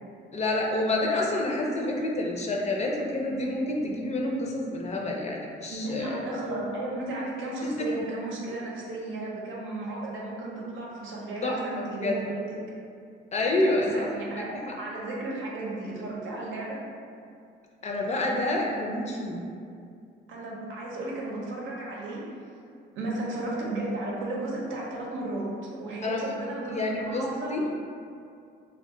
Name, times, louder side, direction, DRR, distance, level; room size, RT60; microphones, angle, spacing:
voice 1, 0.3-6.2 11.4-12.1 13.3-13.9 14.4-14.5 17.8-19.4 26.0-26.3 26.7-27.2 27.5-27.6, left 2 dB, 35° left, -1 dB, 0.5 m, -28 dB
voice 2, 5.7-12.6 13.6-16.8 20.3-22.2 23.0-25.5 25.8-27.7, right 2 dB, 75° right, -4 dB, 0.7 m, -34 dB
2.4 x 2.2 x 3.6 m, 2.4 s
cardioid pair, 90°, 20 cm